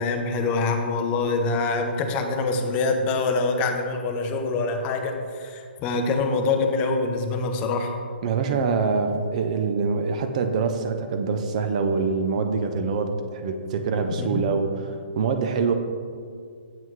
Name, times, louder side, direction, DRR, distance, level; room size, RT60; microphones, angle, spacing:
voice 1, 0.0-7.9 14.2-14.5, left 3 dB, 20° left, 4 dB, 0.5 m, -25 dB
voice 2, 8.2-15.7, right 5 dB, 40° right, 7 dB, 0.5 m, -25 dB
7.4 x 5.5 x 3.1 m, 2.2 s
hypercardioid pair, 160°, 6 cm